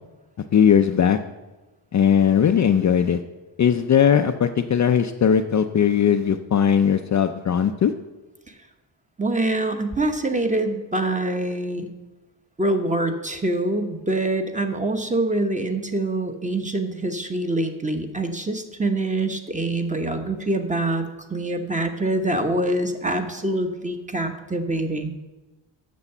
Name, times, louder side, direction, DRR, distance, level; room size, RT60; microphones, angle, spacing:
voice 1, 0.5-1.2 1.9-3.2 3.6-7.9, left 8 dB, 40° left, 7 dB, 0.4 m, -19 dB
voice 2, 9.2-11.9 12.6-25.1, right 2 dB, 15° right, 6 dB, 1.0 m, -25 dB
8.3 x 6.9 x 6.7 m, 1.1 s
cardioid pair, 110°, 46 cm